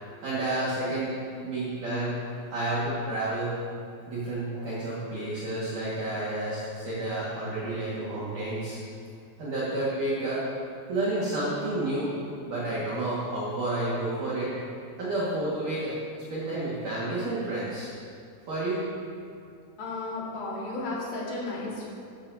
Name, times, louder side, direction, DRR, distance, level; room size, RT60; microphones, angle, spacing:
voice 1, 0.2-1.2 1.4-3.6 4.1-8.8 9.4-10.4 10.9-12.1 12.5-14.6 15.0-15.9 16.3-18.0 18.5-18.9, right 2 dB, 55° right, -8 dB, 2.8 m, -30 dB
voice 2, 19.8-21.9, left 2 dB, 55° left, -5 dB, 3.5 m, -33 dB
13.5 x 13.5 x 2.8 m, 2.4 s
omnidirectional pair, 5.4 m